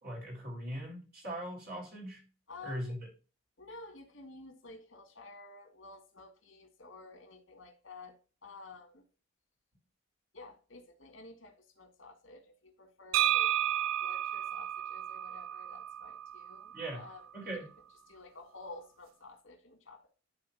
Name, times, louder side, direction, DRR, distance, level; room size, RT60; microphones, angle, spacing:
voice 1, 0.0-2.2 2.6-3.0 16.7-17.0 17.3-17.7, right 1 dB, 50° right, 3.9 m, -40 dB
voice 2, 2.5-3.0 3.6-8.2 8.4-9.1 10.3-13.5 14.0-17.7 18.1-20.1, left 3 dB, 80° left, 2.3 m, -51 dB
sound 1, 13.1-16.9, right 12 dB, 85° right, 0.4 m, -32 dB
11.5 x 4.3 x 2.8 m
head